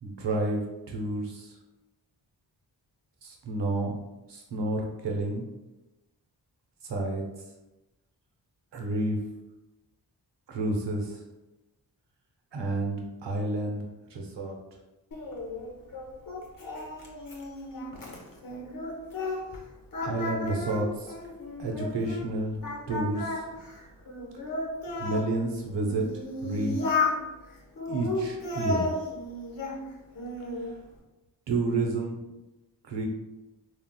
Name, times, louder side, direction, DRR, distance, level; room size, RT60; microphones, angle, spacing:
voice 1, 0.0-1.6 3.2-3.9 4.3-5.5 6.8-7.2 8.7-9.2 10.5-11.2 12.5-13.8 14.1-14.6 20.0-21.1 21.6-22.6 22.9-23.4 25.0-26.0 26.4-26.8 27.9-28.9 31.5-32.2 32.8-33.1, right 2 dB, 70° right, 0 dB, 0.8 m, -30 dB
Singing, 15.1-19.6 19.9-22.3 22.6-25.3 25.9-27.2 27.8-29.8 30.1-30.7, left 2 dB, 50° left, 0.9 m, -33 dB
3.6 x 2.4 x 2.2 m, 1.0 s
cardioid pair, 45°, 44 cm